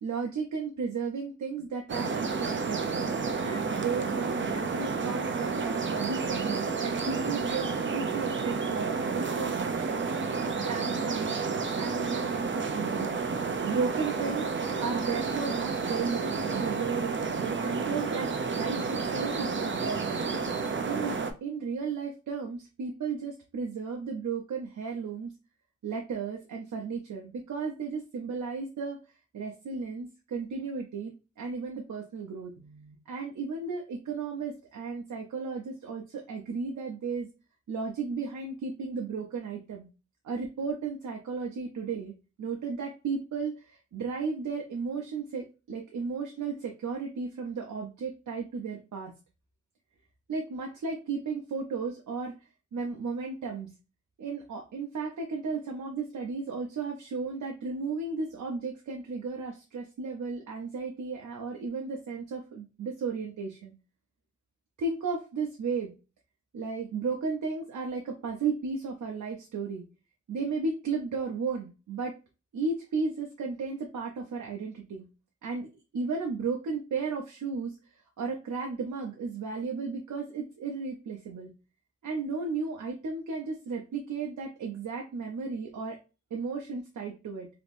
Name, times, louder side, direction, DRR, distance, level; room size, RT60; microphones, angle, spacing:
voice 1, 0.0-2.8 3.4-10.1 10.6-11.4 11.8-13.2 13.6-14.5 14.8-20.2 20.8-25.3 25.8-29.0 29.3-37.3 37.7-39.9 40.2-49.1 50.3-53.7 54.2-63.7 64.8-65.9 66.5-69.8 70.3-72.2 72.5-75.0 75.4-75.7 75.9-81.5 82.0-86.0 86.3-87.5, right 4 dB, 85° right, 1 dB, 0.6 m, -34 dB
sound 1, 1.9-21.3, right 4 dB, 40° right, 0.5 m, -31 dB
3.4 x 2.9 x 2.5 m, 0.31 s
wide cardioid pair, 90°, 29 cm